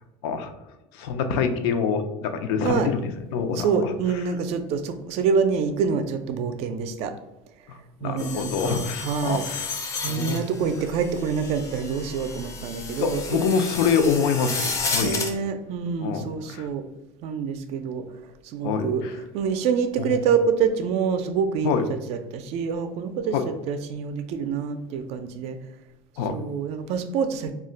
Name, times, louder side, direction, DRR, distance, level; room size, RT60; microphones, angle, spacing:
voice 1, 0.9-4.2 7.7-9.8 10.1-10.4 13.0-15.2 16.0-16.7 18.6-19.2 20.0-20.2 21.6-21.8 23.3-23.4 26.2-26.4, left 6 dB, 85° left, 7 dB, 0.4 m, -26 dB
voice 2, 3.6-7.1 8.0-9.5 10.0-13.4 15.0-16.8 17.2-18.0 18.5-19.0 19.3-21.7 22.1-25.6 26.3-27.5, right 6 dB, 60° right, 9 dB, 0.4 m, -26 dB
sound 1, 8.2-15.3, left 4 dB, 25° left, 0.4 m, -32 dB
2.3 x 2.1 x 3.7 m, 0.96 s
cardioid pair, 130°, 12 cm